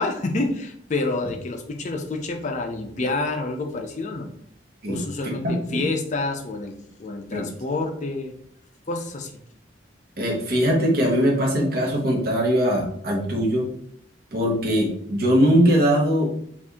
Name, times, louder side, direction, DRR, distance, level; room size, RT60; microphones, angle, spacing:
voice 1, 0.0-4.3 4.9-6.7 7.0-8.3 8.9-9.3, left 2 dB, 40° left, 4 dB, 0.4 m, -28 dB
voice 2, 5.4-5.8 7.3-7.4 10.2-13.7 14.3-16.3, equal, 50° right, -2 dB, 0.9 m, -21 dB
2.7 x 2.5 x 3.5 m, 0.67 s
head